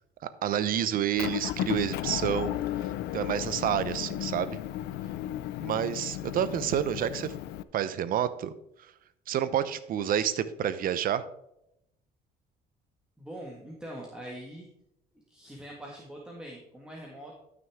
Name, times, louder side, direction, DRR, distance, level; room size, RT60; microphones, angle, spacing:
voice 1, 0.4-2.6 3.1-4.6 5.6-7.3 7.7-8.5 9.3-11.3, right 9 dB, 60° right, 14 dB, 0.7 m, -29 dB
Motor vehicle (road) / Engine, 1.2-7.6, left 13 dB, 80° left, 0.5 m, -34 dB
voice 2, 13.2-14.7 15.3-17.4, right 1 dB, 5° right, -2 dB, 1.7 m, -43 dB
12.5 x 6.0 x 3.6 m, 0.80 s
cardioid pair, 110°, 17 cm